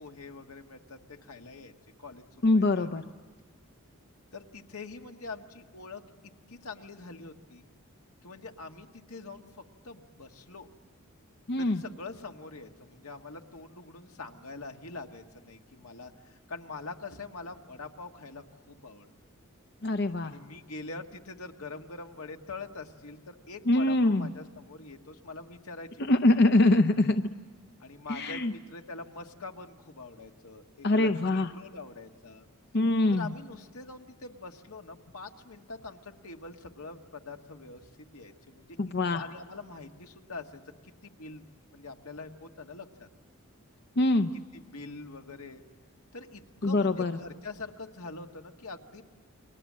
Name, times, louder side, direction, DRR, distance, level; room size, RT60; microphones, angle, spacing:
voice 1, 0.0-1.7 2.0-2.9 4.3-7.7 8.2-9.5 9.8-10.7 11.6-19.1 20.2-26.0 27.8-32.5 33.1-38.8 39.1-41.5 41.7-43.1 44.5-45.6 46.1-49.0, left 3 dB, 80° left, 4 dB, 1.7 m, -44 dB
voice 2, 2.4-3.0 11.5-11.8 19.8-20.4 23.7-24.3 26.1-27.2 28.1-28.5 30.8-31.5 32.7-33.3 38.8-39.2 44.0-44.3 46.6-47.2, left 2 dB, 50° left, 9 dB, 0.7 m, -24 dB
30.0 x 23.5 x 7.5 m, 1.5 s
head